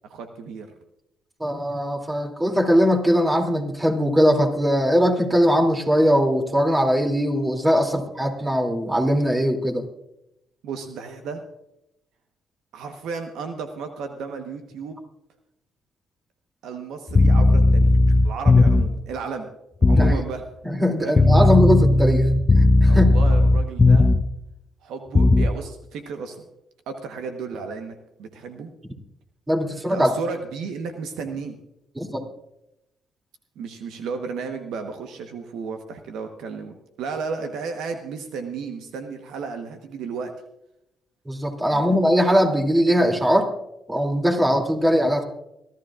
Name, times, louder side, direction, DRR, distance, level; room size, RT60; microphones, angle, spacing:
voice 1, 0.0-0.7 10.6-11.4 12.7-15.0 16.6-19.5 19.8-20.4 21.0-21.5 22.9-24.1 24.8-26.4 26.9-28.7 29.9-31.6 33.6-40.3 41.7-41.9, right 5 dB, 75° right, 6 dB, 1.1 m, -33 dB
voice 2, 1.4-9.9 19.9-20.2 20.6-22.3 22.6-23.1 29.5-30.1 32.0-32.2 41.3-43.5 43.9-45.2, equal, 20° right, 3 dB, 2.8 m, -20 dB
sound 1, 17.1-19.0 19.8-20.2 21.2-24.3 25.1-25.5, left 2 dB, 30° left, 0.7 m, -16 dB
24.0 x 13.5 x 2.5 m, 0.85 s
supercardioid pair, 55°, 0 cm